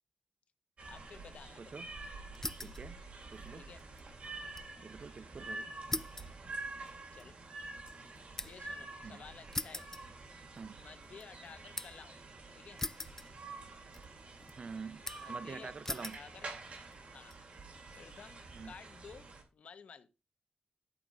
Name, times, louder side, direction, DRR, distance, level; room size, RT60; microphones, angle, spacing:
voice 1, 0.8-1.8 3.5-3.9 7.1-7.4 8.4-9.9 10.8-12.2 12.5-12.8 15.2-16.5 17.1-17.4 18.0-20.1, left 6 dB, 85° left, 0.8 m, -54 dB
sound 1, 0.8-19.4, right 3 dB, 80° right, 2.3 m, -48 dB
voice 2, 1.6-1.9 2.6-3.0 3.3-3.6 4.8-5.8 9.0-9.2 10.6-10.8 14.6-16.2 18.5-18.7, right 5 dB, 60° right, 0.5 m, -46 dB
sound 2, 2.3-2.9 3.2-4.7 5.1-5.2 5.9-8.7 9.5-10.7 11.0-12.1 12.8-13.7 13.9-14.5 15.1-15.4 15.8-16.3 16.9-17.4, left 2 dB, 20° left, 0.4 m, -42 dB
11.0 x 3.8 x 4.9 m
cardioid pair, 75°, 2 cm